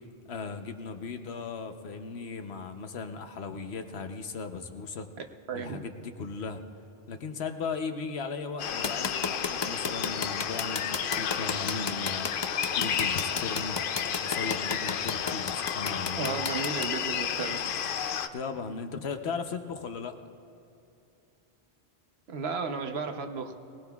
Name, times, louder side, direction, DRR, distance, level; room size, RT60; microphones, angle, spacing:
voice 1, 0.3-5.1 5.5-6.6 7.1-13.8 14.2-16.4 18.3-20.2, left 4 dB, 90° left, 7 dB, 1.1 m, -37 dB
voice 2, 5.5-5.9 16.1-17.6 22.3-23.5, right 5 dB, 80° right, 6 dB, 1.1 m, -34 dB
sound 1, 8.6-18.3, left 8 dB, 65° left, 0.7 m, -32 dB
sound 2, 8.8-16.9, left 5 dB, 40° left, 0.4 m, -32 dB
23.0 x 18.5 x 2.3 m, 2.7 s
omnidirectional pair, 1.0 m